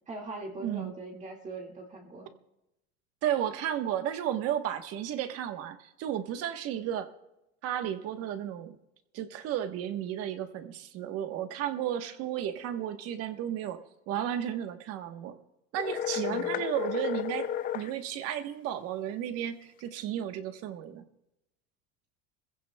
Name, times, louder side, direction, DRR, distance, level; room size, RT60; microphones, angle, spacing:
voice 1, 0.1-2.3 16.2-16.6, right 2 dB, 20° right, 0 dB, 2.0 m, -41 dB
voice 2, 0.6-0.9 3.2-7.1 7.6-8.8 9.1-15.4 15.7-17.5 17.7-21.1, right 10 dB, 45° right, 8 dB, 1.2 m, -33 dB
sound 1, 15.8-17.9, left 10 dB, 25° left, 0.4 m, -32 dB
26.0 x 15.5 x 2.3 m, 0.90 s
supercardioid pair, 145°, 33 cm